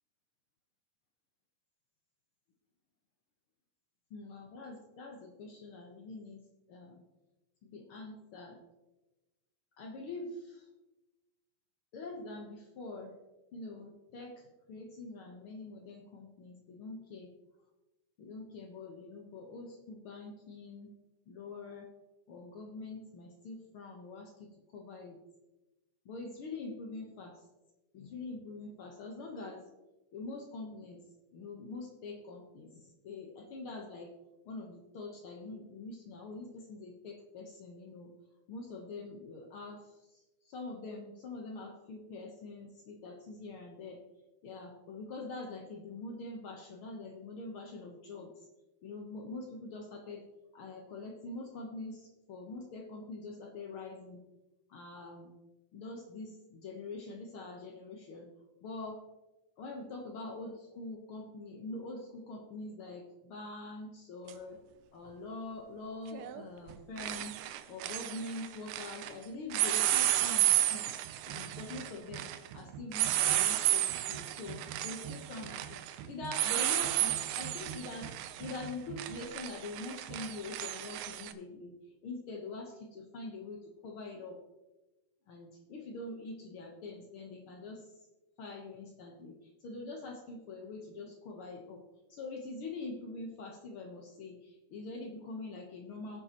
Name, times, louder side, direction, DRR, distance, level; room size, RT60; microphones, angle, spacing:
voice 1, 4.1-6.4 6.7-7.0 7.6-8.6 9.8-10.7 11.9-13.1 13.5-17.3 18.2-20.9 21.3-21.9 22.3-25.2 26.0-27.4 27.9-29.6 30.1-31.0 31.3-32.7 33.0-34.1 34.4-38.1 38.5-39.8 40.1-44.0 44.4-48.3 48.8-50.2 50.5-54.2 54.7-55.3 55.7-58.3 58.6-59.0 59.6-64.6 64.9-67.4 67.7-71.0 71.3-78.1 78.4-81.7 82.0-84.4 85.3-87.9 88.4-89.4 89.6-91.8 92.1-96.2, left 3 dB, 85° left, 1 dB, 1.2 m, -44 dB
sound 1, 64.3-64.4 66.1-66.4 66.7-69.1 69.5-81.3, right 13 dB, 80° right, 2.4 m, -32 dB
18.5 x 7.7 x 2.9 m, 1.1 s
omnidirectional pair, 4.1 m